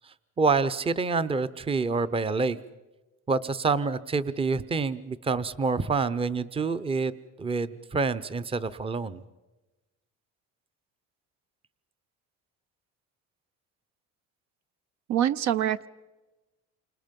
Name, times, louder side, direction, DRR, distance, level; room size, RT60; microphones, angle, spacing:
voice 1, 0.0-2.6 3.3-7.1 7.4-9.2, right 4 dB, 15° right, 13 dB, 0.7 m, -27 dB
voice 2, 15.1-15.9, right 11 dB, 60° right, 14 dB, 0.7 m, -25 dB
28.5 x 26.0 x 5.3 m, 1.1 s
cardioid pair, 130°, 32 cm